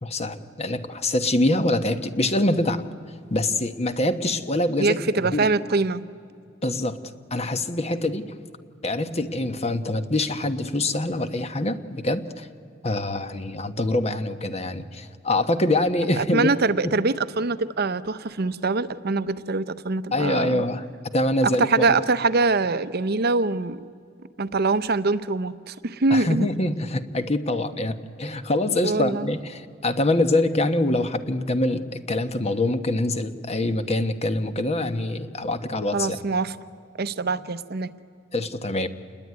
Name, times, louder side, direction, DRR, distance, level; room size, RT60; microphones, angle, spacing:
voice 1, 0.0-2.9 3.3-5.5 6.6-7.0 7.3-8.4 8.8-12.5 12.8-16.5 20.1-20.9 21.1-22.0 26.1-36.2 38.3-38.9, left 1 dB, 35° left, 10 dB, 1.1 m, -25 dB
voice 2, 4.8-6.0 16.1-20.6 21.4-23.8 24.4-26.5 28.8-29.3 35.9-36.5 37.0-37.9, right 3 dB, 55° right, 13 dB, 0.8 m, -24 dB
27.5 x 21.0 x 9.5 m, 2.3 s
head